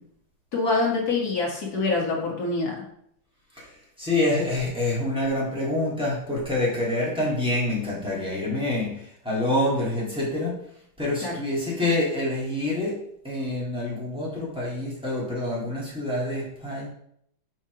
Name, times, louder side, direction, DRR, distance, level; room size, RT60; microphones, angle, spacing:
voice 1, 0.5-2.8 11.2-11.3, left 3 dB, 45° left, -3 dB, 2.2 m, -25 dB
voice 2, 3.5-10.7 11.0-16.9, left 1 dB, 5° right, -6 dB, 2.1 m, -27 dB
6.0 x 4.3 x 4.6 m, 0.69 s
omnidirectional pair, 2.3 m